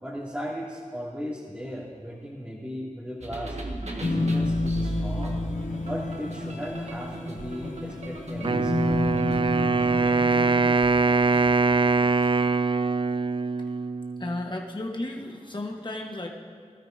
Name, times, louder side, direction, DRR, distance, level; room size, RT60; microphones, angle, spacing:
voice 1, 0.0-3.6 4.0-5.4 5.8-9.1 9.7-9.8, equal, 10° right, -9 dB, 2.3 m, -36 dB
sound 1, 3.2-12.4, right 1 dB, 60° right, 1.4 m, -37 dB
sound 2, 4.0-10.7, left 2 dB, 75° left, 1.0 m, -30 dB
Wind instrument woodwind instrument, 8.4-14.4, right 4 dB, 40° right, 0.3 m, -23 dB
voice 2, 14.2-16.3, left 1 dB, 35° left, 0 dB, 1.2 m, -33 dB
20.0 x 13.0 x 2.6 m, 2.1 s
wide cardioid pair, 45°, 13 cm